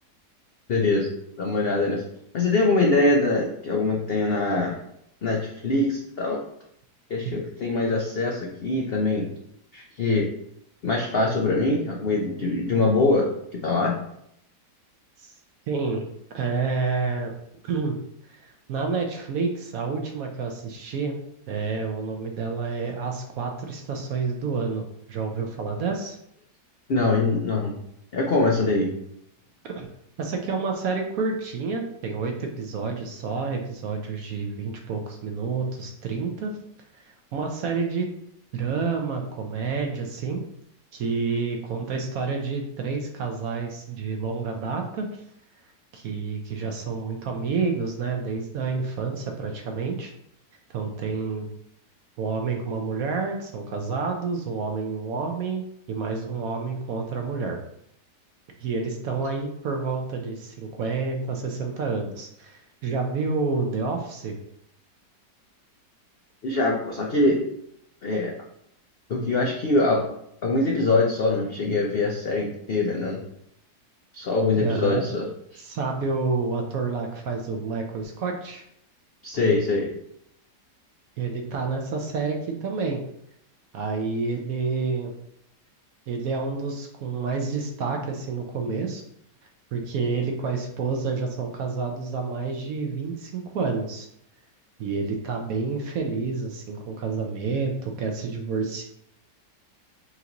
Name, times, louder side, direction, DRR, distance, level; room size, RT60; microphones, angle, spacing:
voice 1, 0.7-1.1 1.4-2.0 2.3-4.8 5.2-6.4 7.1-9.3 9.7-10.3 10.8-13.3 13.6-14.0 26.9-27.8 28.1-28.9 66.4-67.4 68.0-68.3 69.1-70.1 70.4-73.2 74.1-75.6 79.2-79.9, left 2 dB, 85° left, -1 dB, 0.5 m, -23 dB
voice 2, 15.7-16.0 16.3-17.3 17.6-18.0 18.3-21.2 21.5-24.8 25.1-26.2 29.6-29.9 30.2-36.5 37.3-38.1 38.5-40.4 40.9-45.2 45.9-50.1 50.7-51.5 52.2-57.6 58.6-64.3 74.6-75.1 75.6-78.6 81.2-83.0 83.7-85.1 86.1-89.0 89.7-94.1 94.8-98.8, right 4 dB, 65° right, 2 dB, 1.0 m, -29 dB
5.8 x 2.6 x 2.9 m, 0.75 s
omnidirectional pair, 1.8 m